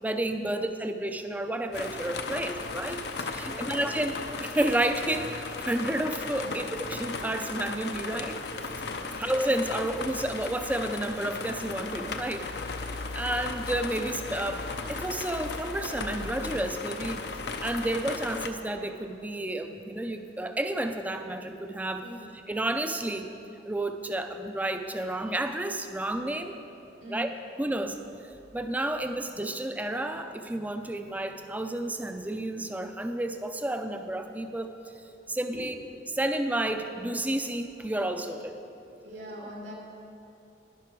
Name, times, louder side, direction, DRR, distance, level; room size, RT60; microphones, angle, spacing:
voice 1, 0.0-5.3 5.6-8.4 9.2-12.4 13.1-14.6 14.9-17.2 17.6-22.1 22.5-23.3 23.6-26.6 27.1-27.3 27.6-28.0 28.5-34.7 35.3-35.7 36.1-38.6, right 1 dB, 10° right, 6 dB, 0.5 m, -31 dB
sound 1, 1.7-18.5, left 3 dB, 65° left, 0.6 m, -36 dB
voice 2, 3.4-3.9 6.4-6.5 9.0-9.3 22.0-22.2 27.0-27.3 35.5-35.7 39.0-39.7, equal, 85° right, -2 dB, 2.5 m, -42 dB
11.5 x 10.0 x 4.6 m, 2.8 s
head